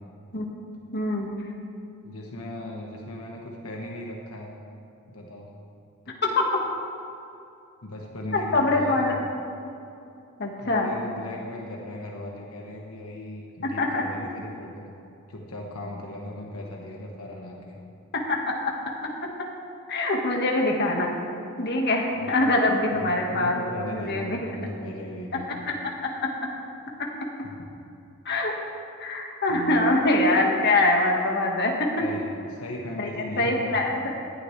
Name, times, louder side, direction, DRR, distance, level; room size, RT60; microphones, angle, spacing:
voice 1, 0.9-1.3 6.2-6.4 8.3-9.1 10.4-10.9 13.6-14.0 18.3-18.7 19.9-21.1 21.6-24.4 26.0-26.3 28.2-28.5 29.0-31.9 33.0-34.0, left 2 dB, 50° left, 0 dB, 1.7 m, -24 dB
voice 2, 2.0-4.5 5.1-5.5 7.8-9.1 10.6-14.9 15.3-17.8 22.7-25.6 27.4-27.7 29.5-29.8 32.0-34.0, left 1 dB, 70° left, -1 dB, 1.3 m, -37 dB
19.0 x 11.5 x 3.3 m, 2.6 s
head